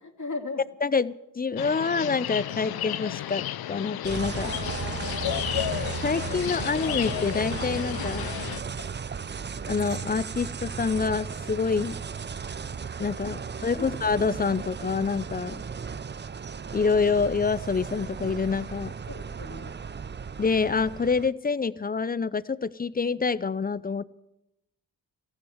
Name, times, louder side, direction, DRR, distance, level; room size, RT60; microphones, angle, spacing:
voice 1, 0.0-0.6 4.4-5.6 13.8-13.9 19.1-19.7, left 3 dB, 50° left, 3 dB, 2.6 m, -37 dB
voice 2, 0.8-4.5 6.0-8.3 9.7-12.0 13.0-13.4 13.6-15.6 16.7-18.9 20.4-24.0, left 5 dB, 25° left, 19 dB, 0.6 m, -27 dB
sound 1, 1.6-8.6, left 12 dB, 70° left, 0.7 m, -32 dB
sound 2, 4.0-21.3, right 6 dB, 30° right, 0.6 m, -35 dB
14.5 x 11.0 x 8.0 m, 0.92 s
supercardioid pair, 45°, 38 cm